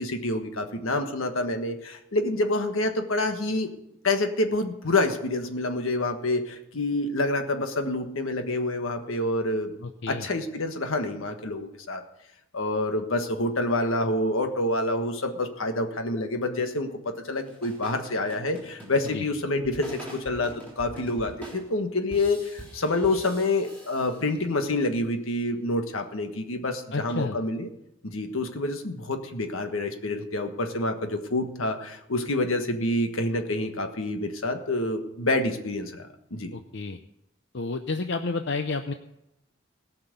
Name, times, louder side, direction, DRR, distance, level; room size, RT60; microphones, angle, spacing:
voice 1, 0.0-3.7 4.0-9.7 10.1-12.0 12.5-16.9 17.2-20.0 20.2-27.7 28.0-36.5, left 2 dB, 80° left, 6 dB, 1.5 m, -27 dB
voice 2, 9.8-10.3 19.1-19.3 26.9-27.4 36.5-37.0 37.5-38.9, left 3 dB, 55° left, 7 dB, 0.6 m, -30 dB
sound 1, 17.3-24.7, equal, 10° left, 3.5 m, -45 dB
17.5 x 5.9 x 8.2 m, 0.85 s
head